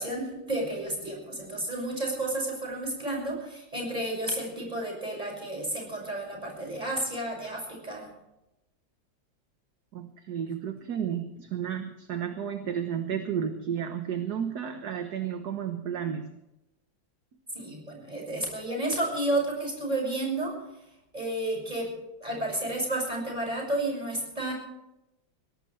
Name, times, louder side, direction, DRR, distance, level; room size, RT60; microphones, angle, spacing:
voice 1, 0.0-8.1 10.5-10.6 17.5-20.5 21.1-21.9 22.2-24.5, right 1 dB, 20° right, -1 dB, 6.5 m, -31 dB
voice 2, 9.9-16.4, right 8 dB, 60° right, 6 dB, 1.6 m, -32 dB
22.0 x 17.5 x 3.3 m, 0.91 s
omnidirectional pair, 2.1 m